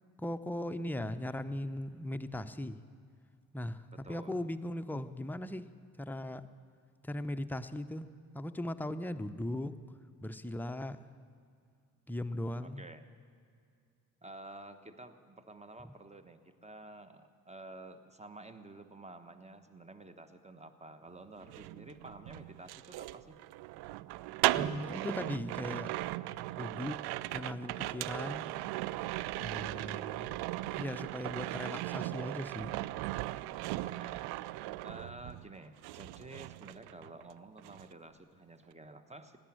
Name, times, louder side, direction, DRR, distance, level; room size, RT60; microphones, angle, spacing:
voice 1, 0.2-2.8 3.5-5.6 6.0-6.5 7.0-8.1 8.3-9.7 10.2-11.0 12.1-12.8 24.5-25.9 26.6-27.0 27.3-28.5 29.4-30.3 30.8-32.7, left 1 dB, 5° left, 9 dB, 0.7 m, -38 dB
voice 2, 3.9-4.4 12.6-13.0 14.2-23.4 33.8-34.2 34.8-39.4, right 2 dB, 15° right, 10 dB, 1.2 m, -51 dB
sound 1, 21.4-35.5 35.8-37.3 37.6-37.9, right 17 dB, 55° right, 0.5 m, -37 dB
17.5 x 10.5 x 7.6 m, 2.4 s
hypercardioid pair, 45°, 46 cm